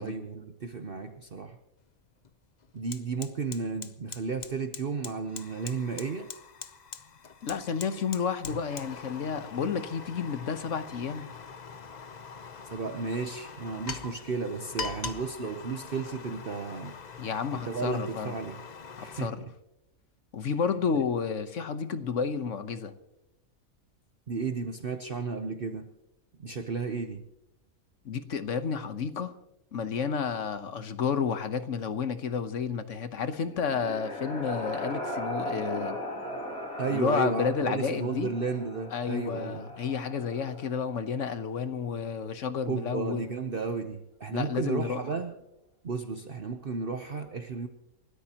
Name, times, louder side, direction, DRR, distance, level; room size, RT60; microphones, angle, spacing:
voice 1, 0.0-1.6 2.7-6.3 12.6-16.9 17.5-18.6 19.0-19.5 20.9-21.0 24.3-25.9 26.4-27.2 36.8-39.6 42.7-45.3 45.8-47.7, right 4 dB, 45° right, 1.0 m, -33 dB
Fire, 1.8-1.9 2.2-19.3, left 5 dB, 40° left, 0.7 m, -43 dB
voice 2, 7.4-11.3 17.2-18.4 19.0-19.4 20.3-22.9 28.0-29.3 29.7-36.0 36.9-38.3 38.9-43.3 44.3-45.0, left 6 dB, 65° left, 1.3 m, -31 dB
sound 1, 33.3-41.0, equal, 85° left, 3.2 m, -38 dB
29.5 x 13.0 x 2.9 m
omnidirectional pair, 1.5 m